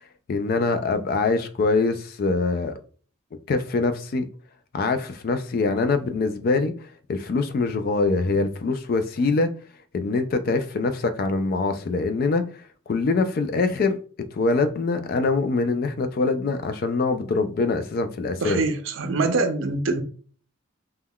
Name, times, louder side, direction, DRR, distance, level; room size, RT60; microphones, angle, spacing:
voice 1, 0.3-2.7 3.5-4.3 4.7-6.7 7.1-9.5 9.9-12.4 12.9-13.9 14.3-18.6, left 3 dB, 50° left, 0.3 m, -23 dB
voice 2, 18.4-20.0, right 3 dB, 75° right, 0.4 m, -24 dB
3.5 x 2.2 x 2.2 m
head